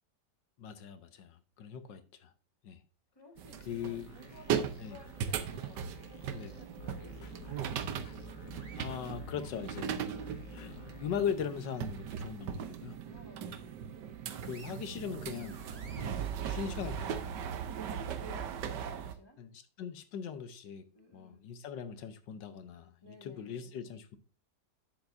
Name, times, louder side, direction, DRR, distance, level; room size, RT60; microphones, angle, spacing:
voice 1, 0.6-2.3 2.6-2.8 3.6-4.1 4.8-5.0 6.3-6.6 8.8-10.2 10.5-13.0 14.4-15.6 16.0-17.4 19.4-24.2, left 7 dB, 80° left, 1.6 m, -40 dB
voice 2, 3.1-7.7 13.0-13.8 17.6-19.4 20.9-21.4 23.0-23.7, equal, 15° left, 1.7 m, -54 dB
sound 1, 3.4-19.1, right 8 dB, 75° right, 1.4 m, -39 dB
sound 2, 3.9-11.4, left 4 dB, 50° left, 1.3 m, -51 dB
sound 3, 8.0-10.0 10.5-11.9 12.3-12.5 12.9-13.7 14.1-17.6, right 2 dB, 25° right, 1.1 m, -59 dB
10.5 x 7.4 x 2.6 m
omnidirectional pair, 2.0 m